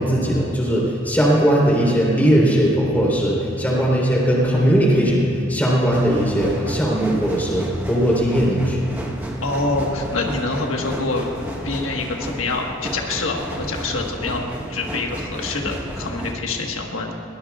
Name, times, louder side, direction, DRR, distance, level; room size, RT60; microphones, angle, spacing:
voice 1, 0.0-8.8, equal, 10° left, -4 dB, 3.6 m, -19 dB
sound 1, 5.9-16.3, equal, 10° right, 1.2 m, -32 dB
voice 2, 9.4-11.3 11.6-14.4 14.7-17.1, left 3 dB, 90° left, 1 dB, 1.5 m, -25 dB
22.0 x 20.0 x 2.4 m, 2.8 s
head